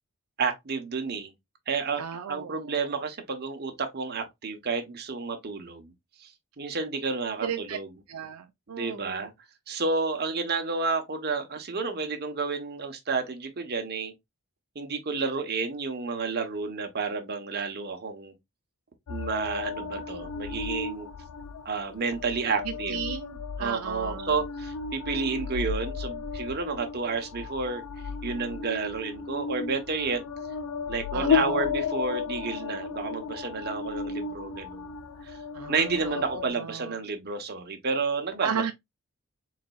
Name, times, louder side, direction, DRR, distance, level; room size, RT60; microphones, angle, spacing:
voice 1, 0.4-1.3 1.7-5.9 6.2-6.3 6.6-7.9 8.7-9.3 9.7-14.1 14.7-18.3 19.1-21.1 21.6-23.0 23.6-27.8 28.2-30.2 30.9-34.9 35.2-35.4 35.7-38.7, right 4 dB, 45° right, 0.9 m, -31 dB
voice 2, 2.0-2.9 7.4-7.8 8.1-9.3 22.6-24.4 31.1-31.6 35.5-37.0 38.4-38.7, right 7 dB, 75° right, 0.4 m, -35 dB
sound 1, 19.1-36.5, left 6 dB, 75° left, 0.5 m, -34 dB
4.0 x 3.9 x 2.3 m
head